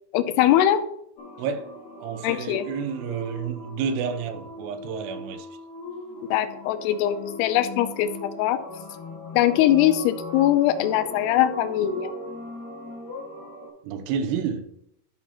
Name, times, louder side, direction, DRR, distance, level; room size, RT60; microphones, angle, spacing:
voice 1, 0.1-0.8 2.2-2.7 6.3-8.6 9.3-12.1, left 12 dB, 85° left, 2.6 m, -21 dB
sound 1, 1.2-13.7, left 2 dB, 60° left, 3.3 m, -39 dB
voice 2, 2.0-5.5 13.8-14.7, right 6 dB, 85° right, 2.9 m, -30 dB
13.0 x 5.9 x 2.9 m
omnidirectional pair, 4.7 m